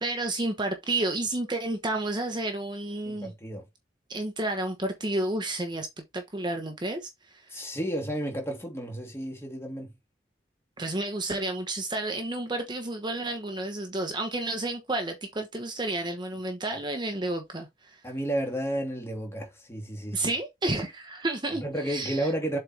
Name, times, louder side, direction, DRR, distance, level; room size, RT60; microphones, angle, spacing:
voice 1, 0.0-3.3 4.1-5.9 6.1-7.6 10.8-18.0 20.1-22.3, right 2 dB, 25° right, 1.1 m, -31 dB
voice 2, 3.0-3.6 7.5-9.9 16.7-16.8 18.0-20.3 21.6-22.6, right 1 dB, 15° left, 2.6 m, -32 dB
7.6 x 4.4 x 3.4 m
head